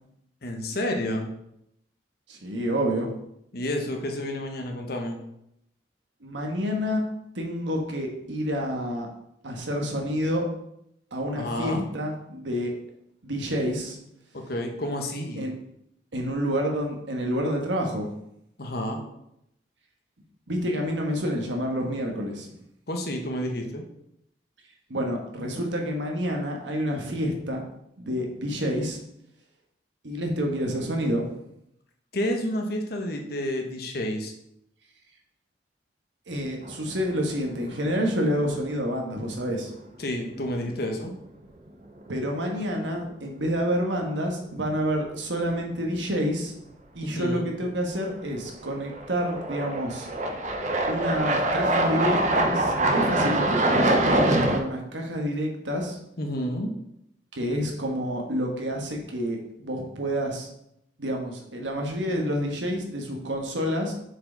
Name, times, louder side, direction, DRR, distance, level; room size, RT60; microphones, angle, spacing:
voice 1, 0.4-1.3 3.5-5.2 11.3-11.8 14.3-15.4 18.6-19.0 22.9-23.8 32.1-34.3 40.0-41.1 47.0-47.5 56.2-56.7, left 1 dB, 55° left, 3 dB, 1.0 m, -30 dB
voice 2, 2.3-3.1 6.2-7.0 7.3-9.1 9.4-10.5 11.1-12.7 13.2-14.0 15.4-15.5 16.1-18.1 20.5-22.5 24.9-27.6 28.0-29.0 30.0-31.4 36.3-39.7 42.1-46.5 46.9-50.1 50.9-56.0 57.3-60.5 61.0-63.9, equal, 85° right, 1 dB, 1.3 m, -28 dB
sound 1, 36.6-37.3 37.6-37.7 40.6-40.7 42.1-42.3 42.6-42.7 48.1-48.2 48.9-54.6, right 1 dB, 40° right, 0.6 m, -24 dB
6.6 x 4.7 x 3.9 m, 0.79 s
head